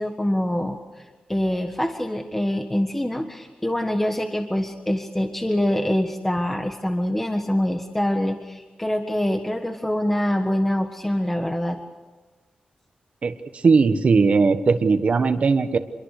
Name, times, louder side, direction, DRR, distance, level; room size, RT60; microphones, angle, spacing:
voice 1, 0.0-11.8, left 1 dB, 10° left, 5 dB, 1.5 m, -25 dB
voice 2, 13.6-15.8, right 4 dB, 55° right, 7 dB, 1.4 m, -18 dB
27.0 x 22.5 x 6.7 m, 1.2 s
wide cardioid pair, 130°, 3 cm